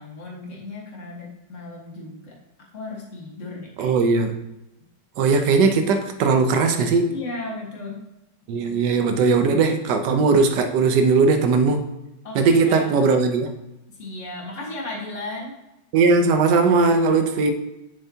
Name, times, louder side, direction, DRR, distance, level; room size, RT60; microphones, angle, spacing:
voice 1, 0.0-2.4 2.7-3.9 7.1-8.0 8.6-8.7 12.2-12.9 13.9-15.6, left 2 dB, 45° left, -2 dB, 1.8 m, -35 dB
voice 2, 3.8-4.3 5.2-7.2 8.5-11.9 12.3-13.5 15.9-17.5, right 4 dB, 80° right, 7 dB, 1.3 m, -19 dB
7.1 x 6.9 x 2.8 m, 0.92 s
omnidirectional pair, 1.9 m